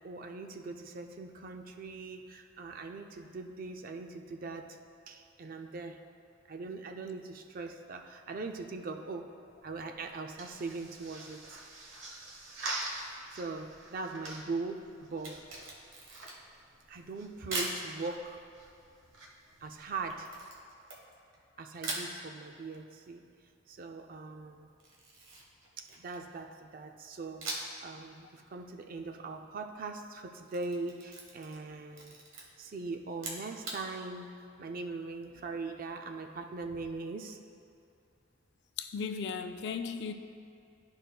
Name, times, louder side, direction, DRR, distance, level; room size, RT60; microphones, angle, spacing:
voice 1, 0.0-4.8 5.1-6.1 6.5-9.3 9.6-11.6 13.1-15.4 16.9-18.4 19.6-20.3 21.6-23.3 23.7-24.7 25.8-32.1 32.6-34.3 34.6-37.4, right 3 dB, 45° right, 5 dB, 0.4 m, -41 dB
sound 1, 9.5-20.4, right 2 dB, 70° right, 1.0 m, -46 dB
Camera, 15.1-16.6 17.5-17.8 20.2-21.4 21.8-22.1 24.8-26.3 27.4-27.8 28.2-28.3 30.3-31.7 31.9-32.4 33.1-33.8, right 2 dB, 85° right, 1.3 m, -40 dB
voice 2, 38.8-40.1, left 5 dB, 60° left, 7 dB, 0.4 m, -36 dB
12.0 x 5.2 x 2.2 m, 2.5 s
head